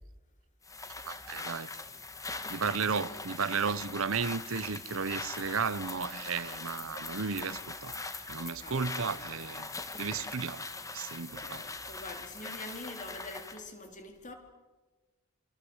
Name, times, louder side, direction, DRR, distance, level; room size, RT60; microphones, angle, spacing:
sound 1, 0.6-13.6, left 3 dB, 15° left, 1.8 m, -41 dB
voice 1, 1.1-1.7 2.5-8.0 8.3-9.7 10.0-10.7 10.9-11.6, right 5 dB, 80° right, 0.9 m, -34 dB
voice 2, 2.9-3.2 8.6-9.2 11.4-14.3, left 2 dB, 35° left, 4.2 m, -46 dB
27.0 x 26.5 x 8.2 m
head